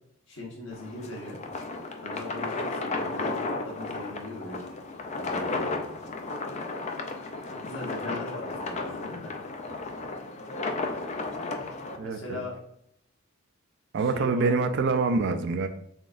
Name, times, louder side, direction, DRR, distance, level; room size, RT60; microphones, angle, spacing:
voice 1, 0.3-1.4 2.0-3.3 3.6-4.6 5.1-6.1 7.5-9.3 12.0-12.6 14.0-14.7, left 2 dB, 60° left, -2 dB, 1.3 m, -40 dB
sound 1, 0.7-12.0, left 3 dB, 30° left, 0.3 m, -34 dB
voice 2, 12.0-12.4 13.9-15.7, right 4 dB, 50° right, 8 dB, 0.3 m, -25 dB
4.0 x 3.6 x 2.5 m, 0.74 s
head